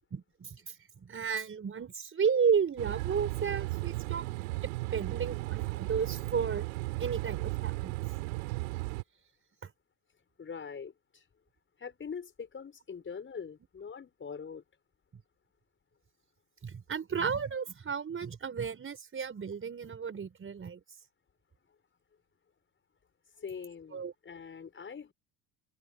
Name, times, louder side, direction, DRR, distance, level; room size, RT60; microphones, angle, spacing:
voice 1, 0.1-6.7 7.0-8.0 9.6-9.7 16.6-20.8 23.9-24.1, right 6 dB, 30° right, 5.5 m, -33 dB
sound 1, 2.8-9.0, right 23 dB, 85° right, 4.8 m, -35 dB
voice 2, 10.4-11.2 11.8-14.6 23.4-25.1, left 6 dB, 30° left, 6.3 m, -43 dB
supercardioid pair, 100°, 41 cm